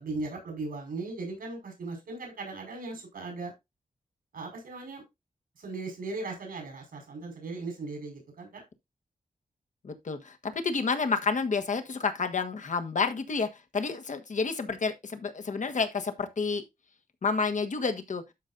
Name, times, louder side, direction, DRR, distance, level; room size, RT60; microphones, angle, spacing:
voice 1, 0.0-3.5 4.3-5.0 5.6-8.6, right 3 dB, 90° right, 5.0 m, -38 dB
voice 2, 9.8-16.6 17.2-18.2, left 4 dB, 60° left, 1.5 m, -30 dB
12.5 x 5.3 x 2.6 m
wide cardioid pair, 85°, 14 cm